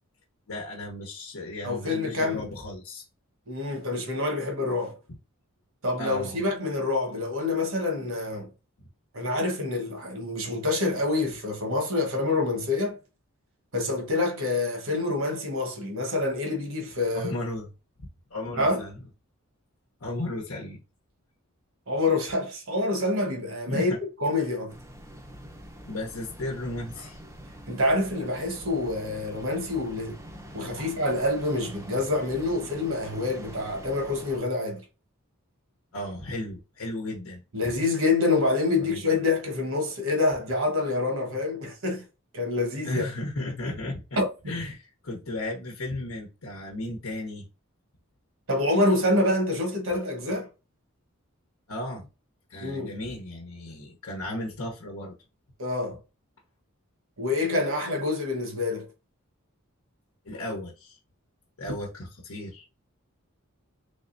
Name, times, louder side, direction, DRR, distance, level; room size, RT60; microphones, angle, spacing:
voice 1, 0.5-3.0 6.0-6.4 8.8-8.9 17.1-17.7 18.3-19.0 20.0-20.8 23.7-24.0 24.4-24.5 25.8-27.2 30.8-30.9 35.9-37.8 38.8-39.0 42.8-44.0 44.5-47.5 50.3-50.4 51.7-52.1 52.5-55.1 60.2-61.0 61.6-62.6, left 1 dB, 70° left, 1.0 m, -35 dB
voice 2, 1.6-2.5 3.5-5.0 5.8-8.5 9.1-13.0 13.7-17.3 18.6-18.8 21.9-23.9 24.2-24.7 27.7-30.2 30.5-34.8 37.5-42.0 42.3-43.0 44.2-44.6 48.5-50.5 52.6-52.9 55.6-56.0 57.2-58.9, left 2 dB, 65° right, 1.2 m, -27 dB
sound 1, 24.7-34.4, equal, 15° right, 0.6 m, -45 dB
3.4 x 3.3 x 2.6 m
head